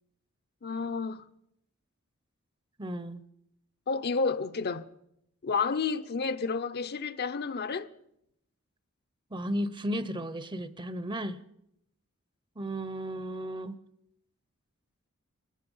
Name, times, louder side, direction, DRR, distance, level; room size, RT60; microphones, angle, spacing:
voice 1, 0.6-1.2 3.9-4.9 5.4-7.9, left 4 dB, 50° left, 0.7 m, -30 dB
voice 2, 2.8-3.2 9.3-11.4 12.6-13.7, equal, 25° right, 0.7 m, -34 dB
23.5 x 20.0 x 5.5 m
head